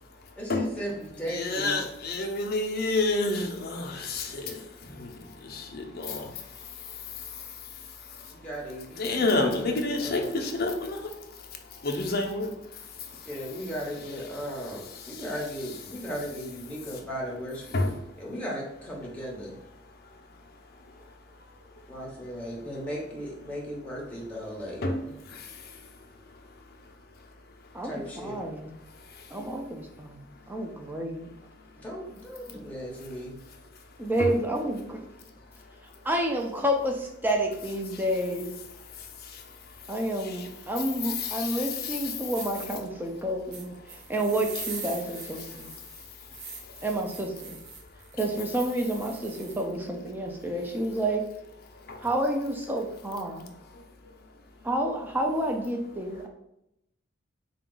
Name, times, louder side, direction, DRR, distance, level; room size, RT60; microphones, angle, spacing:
voice 1, 0.3-1.8 8.3-10.4 13.3-17.8 18.2-19.6 21.9-25.2 27.8-28.4 31.8-33.4, equal, 5° left, -4 dB, 0.8 m, -37 dB
voice 2, 1.3-6.3 9.0-11.1 11.8-12.5 17.7-17.9 24.8-25.0 25.3-25.5 34.2-34.3 39.3-39.4 40.2-40.5 41.0-42.1 51.9-52.0, left 2 dB, 45° left, 2 dB, 0.5 m, -29 dB
voice 3, 28.2-28.7 29.3-31.3 34.0-35.0 36.0-38.5 39.9-45.7 46.8-47.6 48.1-51.2 52.0-53.5 54.6-56.3, right 1 dB, 10° right, 2 dB, 0.4 m, -29 dB
sound 1, 42.3-42.7 43.5-49.6, right 5 dB, 75° right, 0.7 m, -43 dB
3.6 x 2.3 x 3.8 m, 0.84 s
head